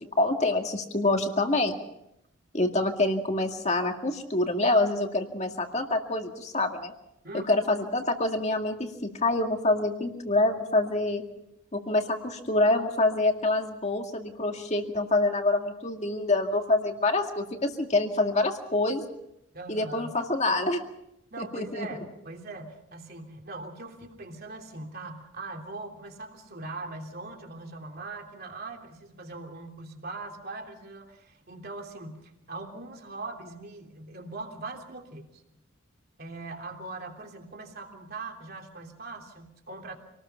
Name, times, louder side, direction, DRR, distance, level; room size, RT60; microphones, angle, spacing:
voice 1, 0.2-1.8 2.5-6.9 7.3-11.2 11.7-19.0 19.7-20.8 21.4-21.9, left 2 dB, 35° left, 4 dB, 2.0 m, -26 dB
voice 2, 7.2-7.6 19.5-20.1 21.3-35.4 36.2-40.0, right 3 dB, 50° right, 2 dB, 3.1 m, -41 dB
27.0 x 19.5 x 5.8 m, 0.84 s
head